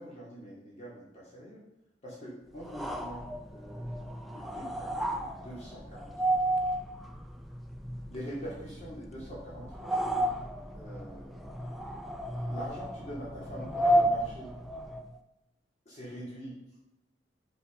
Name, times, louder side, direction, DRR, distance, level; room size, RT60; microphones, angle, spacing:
voice 1, 0.0-1.6 2.0-3.2 3.5-6.1 8.1-10.3 10.7-11.5 12.5-14.5 15.8-16.6, equal, 40° left, -6 dB, 2.8 m, -44 dB
sound 1, 2.6-15.1, right 1 dB, ahead, 0.7 m, -33 dB
8.1 x 5.8 x 5.2 m, 0.91 s
head